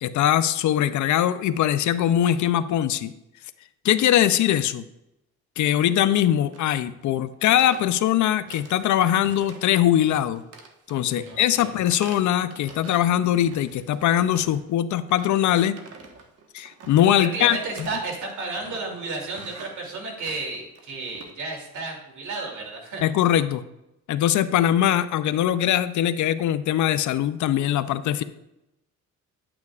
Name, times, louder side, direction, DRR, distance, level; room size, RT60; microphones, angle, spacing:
voice 1, 0.0-3.1 3.8-4.8 5.6-10.4 10.9-15.8 16.5-17.6 23.0-23.6 24.1-28.2, left 11 dB, 75° left, 13 dB, 0.6 m, -21 dB
sound 1, 6.5-6.8 7.0-7.2 7.4-8.9 9.2-9.8 10.1-13.1 13.4-14.7 15.1-21.3, right 4 dB, 50° right, 1.3 m, -47 dB
voice 2, 11.1-11.7 17.2-23.0, right 3 dB, 70° right, 0 dB, 2.8 m, -32 dB
10.5 x 8.7 x 2.4 m, 0.86 s
cardioid pair, 90°, 30 cm